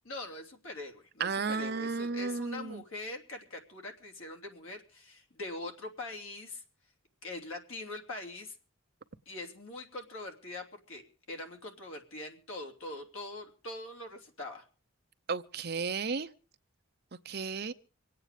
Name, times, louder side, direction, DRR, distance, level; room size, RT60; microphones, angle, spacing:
voice 1, 0.0-6.6 7.2-8.5 9.2-11.0 11.3-14.6, left 2 dB, 70° left, 3.1 m, -43 dB
voice 2, 1.2-2.8 15.3-16.3 17.3-17.7, right 4 dB, 45° right, 0.7 m, -33 dB
25.5 x 8.8 x 5.0 m
head